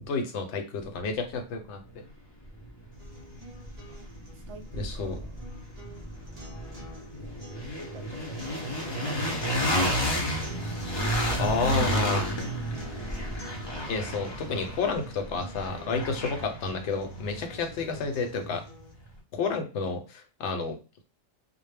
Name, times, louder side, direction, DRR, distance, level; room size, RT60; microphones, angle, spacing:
voice 1, 0.1-1.8 4.7-5.1 11.1-12.4 13.9-18.6 19.3-20.8, left 4 dB, 70° left, 5 dB, 0.8 m, -30 dB
sound 1, 2.1-2.2 2.6-18.6, equal, 35° left, 0.4 m, -32 dB
sound 2, 2.9-18.9, right 1 dB, 40° right, 0.6 m, -49 dB
voice 2, 4.5-5.5 7.4-7.5 7.8-10.3, right 3 dB, 70° right, 5 dB, 0.8 m, -47 dB
2.1 x 2.0 x 3.2 m, 0.32 s
omnidirectional pair, 1.3 m